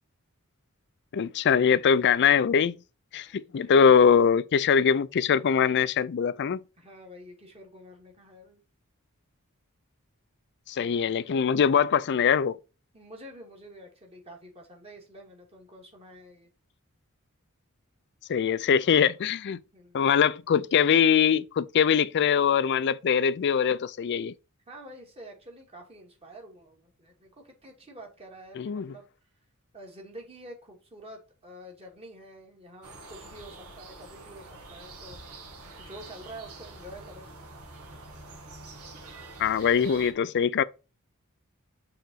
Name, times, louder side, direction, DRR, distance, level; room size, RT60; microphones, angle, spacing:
voice 1, 1.1-2.8 3.1-6.6 10.7-12.6 18.3-19.6 19.9-24.3 28.6-28.9 39.4-40.6, left 7 dB, 50° left, 0.4 m, -22 dB
voice 2, 3.1-3.8 6.8-8.6 10.8-10.9 12.9-16.5 18.7-18.9 19.7-20.0 24.7-29.1 29.7-35.2 35.8-37.3, right 1 dB, 30° right, 2.2 m, -48 dB
sound 1, 32.8-40.1, right 2 dB, 90° right, 1.8 m, -46 dB
6.7 x 3.9 x 4.6 m
head